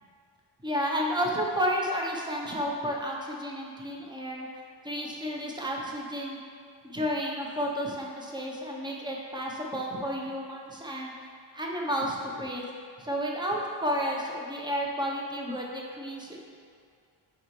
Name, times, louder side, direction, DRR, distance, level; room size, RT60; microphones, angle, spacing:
voice 1, 0.6-6.4 6.8-11.1 11.5-12.6 13.0-16.4, equal, 10° right, -2 dB, 0.7 m, -31 dB
7.3 x 5.2 x 3.1 m, 2.2 s
wide cardioid pair, 155°, 49 cm